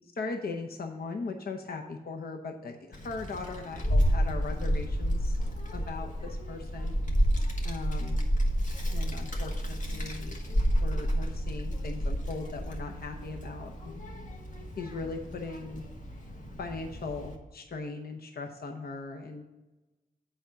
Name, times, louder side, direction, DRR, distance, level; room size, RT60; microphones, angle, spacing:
voice 1, 0.2-5.3 5.7-6.9 7.6-8.3 8.9-14.0 14.8-15.8 16.6-19.4, left 3 dB, 75° left, 3 dB, 0.8 m, -39 dB
Child speech kid speaking, 2.9-17.3, equal, 55° left, 1.3 m, -30 dB
8.1 x 5.0 x 5.8 m, 1.1 s
wide cardioid pair, 120°, 16 cm